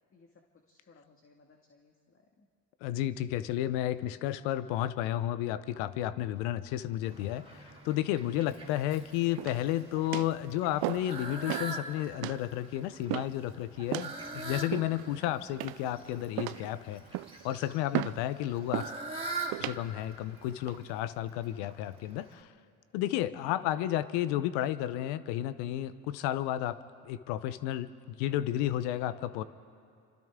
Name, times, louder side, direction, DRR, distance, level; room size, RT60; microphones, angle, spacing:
voice 1, 0.1-2.5, left 4 dB, 35° left, 2 dB, 2.0 m, -62 dB
voice 2, 2.8-17.0 17.4-18.9 19.6-22.5 22.9-26.8 27.0-29.4, left 13 dB, 80° left, 15 dB, 0.9 m, -32 dB
Fowl, 7.0-22.4, right 3 dB, 15° right, 3.8 m, -44 dB
sound 1, 9.4-9.7 10.1-10.4 10.8-11.1 11.5-11.7 12.2-12.4 13.1-13.4 13.9-14.1 14.7-15.1 15.6-16.0 16.4-16.7 17.1-17.4 17.9-18.2 18.7-19.0 19.5-19.8 20.4-20.7, right 20 dB, 65° right, 0.5 m, -35 dB
28.5 x 25.5 x 3.7 m, 2.5 s
hypercardioid pair, 65°, 40 cm